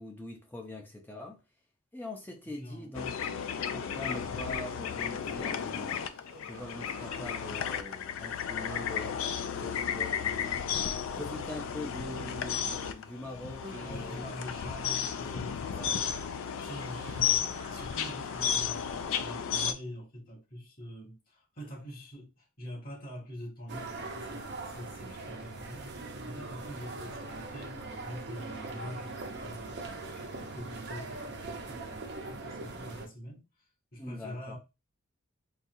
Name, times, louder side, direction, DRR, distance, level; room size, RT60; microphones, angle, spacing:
voice 1, 0.0-1.4 1.9-6.0 6.4-10.6 11.1-14.3 15.7-16.0 34.0-34.6, left 1 dB, 10° left, 0.5 m, -43 dB
voice 2, 2.5-2.9 8.8-8.9 13.8-16.1 16.3-25.9 26.2-29.8 30.1-33.5 33.9-34.6, equal, 45° left, 1.8 m, -45 dB
sound 1, 2.9-19.7, left 8 dB, 70° left, 0.4 m, -34 dB
Human voice, 4.1-19.2, right 3 dB, 80° right, 1.0 m, -54 dB
sound 2, 23.7-33.1, right 2 dB, 55° right, 0.6 m, -41 dB
4.1 x 2.3 x 2.6 m
head